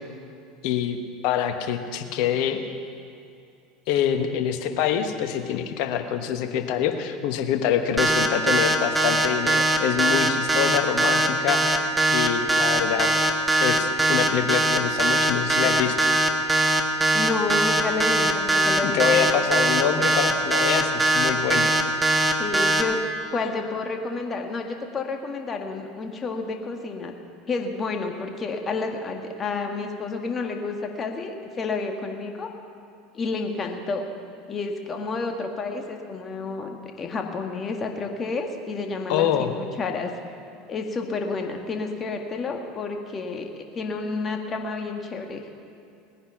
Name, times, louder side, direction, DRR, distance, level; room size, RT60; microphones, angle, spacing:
voice 1, 0.6-2.6 3.9-13.1 13.6-16.1 18.8-21.7 39.1-39.5, left 9 dB, 60° left, 7 dB, 1.2 m, -25 dB
sound 1, 8.0-22.8, right 2 dB, 10° right, 1.4 m, -21 dB
voice 2, 17.1-19.3 22.4-23.0 23.3-27.1 27.5-32.5 33.1-34.0 34.5-40.1 40.7-45.4, left 3 dB, 30° left, 3 dB, 1.9 m, -30 dB
19.5 x 10.0 x 5.8 m, 2.5 s
figure-of-eight pair, 75°, 0 cm